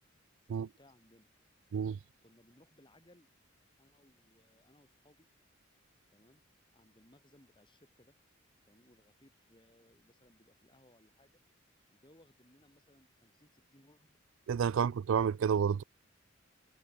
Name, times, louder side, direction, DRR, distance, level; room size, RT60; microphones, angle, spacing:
voice 1, 0.5-1.3 2.2-3.3 3.8-5.3 6.1-6.4 6.7-8.1 8.6-11.4 11.9-14.2 14.7-14.9, left 1 dB, 25° left, 3.7 m, -65 dB
voice 2, 14.5-15.8, right 7 dB, 70° right, 0.3 m, -30 dB
head